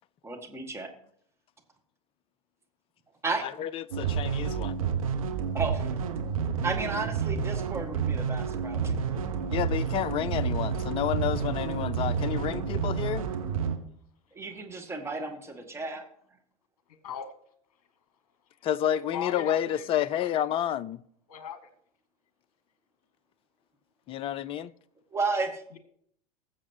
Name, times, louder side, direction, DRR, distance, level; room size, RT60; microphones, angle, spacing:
voice 1, 0.2-0.9 3.2-3.4 5.5-5.9 6.6-9.0 14.3-16.0 25.1-25.8, right 3 dB, 15° right, 1.9 m, -33 dB
voice 2, 3.4-4.7 9.5-13.3 18.6-21.0 24.1-24.7, left 11 dB, 30° left, 0.5 m, -30 dB
sound 1, 3.9-13.8, right 6 dB, 65° right, 1.3 m, -30 dB
voice 3, 16.9-17.3 19.1-20.6 21.3-21.7 25.7-25.8, left 7 dB, 55° left, 1.3 m, -40 dB
20.5 x 7.4 x 2.9 m
figure-of-eight pair, 80°, 19 cm